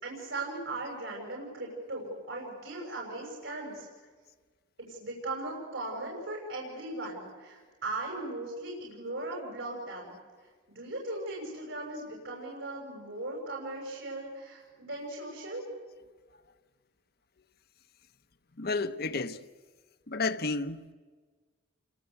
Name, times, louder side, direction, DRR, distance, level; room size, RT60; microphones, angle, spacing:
voice 1, 0.0-3.9 4.8-10.1 10.7-15.6, right 2 dB, 85° right, 6.8 m, -38 dB
voice 2, 18.6-19.4 20.1-20.9, left 3 dB, 55° left, 1.0 m, -31 dB
29.0 x 24.0 x 8.3 m
head